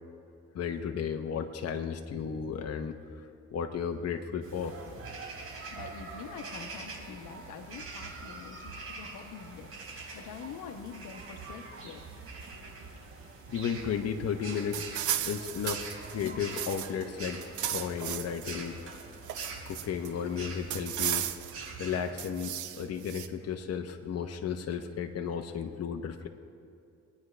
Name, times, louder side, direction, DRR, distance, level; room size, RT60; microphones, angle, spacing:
voice 1, 0.5-4.8 13.5-17.4 17.7-18.8 19.7-26.3, left 7 dB, 55° left, 5 dB, 0.9 m, -34 dB
sound 1, 4.4-22.1, right 3 dB, 50° right, 3.9 m, -44 dB
voice 2, 5.5-12.1, left 7 dB, 80° left, 6 dB, 1.1 m, -46 dB
sound 2, 14.7-17.0 17.3-18.5 18.9-20.1 20.7-21.7 22.2-23.3, right 11 dB, 80° right, 0.8 m, -35 dB
23.5 x 9.6 x 3.3 m, 2.4 s
cardioid pair, 90°, 30 cm